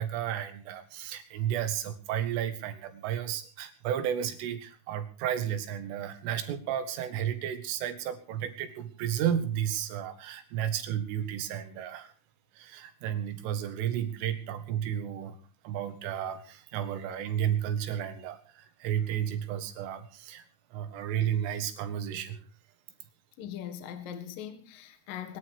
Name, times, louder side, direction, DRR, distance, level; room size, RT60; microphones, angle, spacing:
voice 1, 0.0-12.1 12.6-15.4 15.6-20.4 20.7-22.4, right 10 dB, 85° right, 4.4 m, -32 dB
voice 2, 23.4-25.4, left 9 dB, 55° left, 2.8 m, -40 dB
23.0 x 11.5 x 4.8 m
omnidirectional pair, 5.6 m